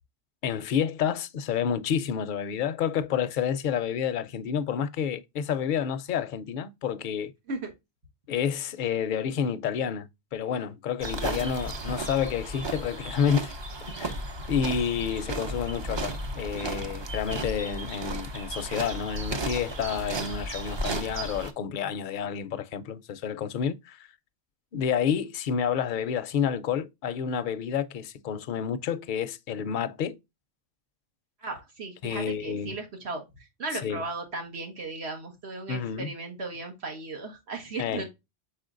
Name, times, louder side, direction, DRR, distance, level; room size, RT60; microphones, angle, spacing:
voice 1, 0.4-7.3 8.3-13.5 14.0-14.2 14.5-24.1 24.7-30.2 32.0-32.8 33.8-34.0 35.7-36.1 37.8-38.1, left 8 dB, 60° left, 0.6 m, -29 dB
sound 1, 11.0-21.5, right 2 dB, 40° right, 0.4 m, -34 dB
voice 2, 31.4-38.1, right 3 dB, 85° right, 1.5 m, -36 dB
5.0 x 4.3 x 2.4 m
omnidirectional pair, 1.1 m